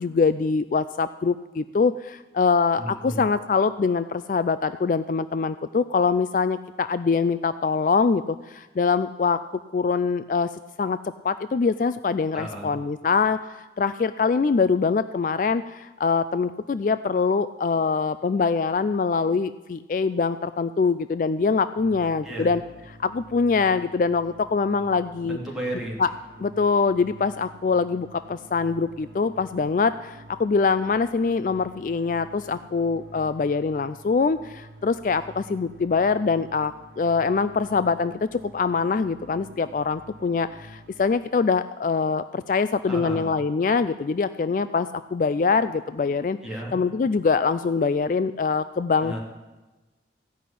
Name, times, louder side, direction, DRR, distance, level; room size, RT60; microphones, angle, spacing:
voice 1, 0.0-9.4 9.7-10.5 10.8-11.0 11.2-22.6 22.9-25.4 26.0-26.1 26.4-46.4 46.7-49.1, left 4 dB, 45° left, 13 dB, 0.3 m, -24 dB
voice 2, 2.8-3.2 12.3-12.7 22.2-22.5 25.2-26.0 42.9-43.4 46.4-46.7 49.0-49.2, right 1 dB, ahead, -4 dB, 2.8 m, -33 dB
sound 1, 21.8-41.1, right 1 dB, 90° right, 1.2 m, -49 dB
15.5 x 6.0 x 9.9 m, 1.2 s
head